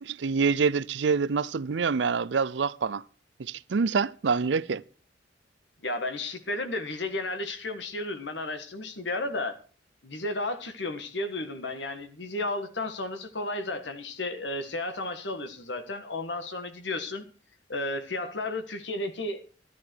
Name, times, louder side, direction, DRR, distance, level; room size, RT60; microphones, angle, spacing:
voice 1, 0.0-3.0 3.4-4.8, right 5 dB, 75° right, 0.5 m, -26 dB
voice 2, 5.8-9.6 10.0-17.2 17.7-19.4, left 2 dB, 75° left, 1.6 m, -33 dB
13.0 x 11.0 x 4.6 m
head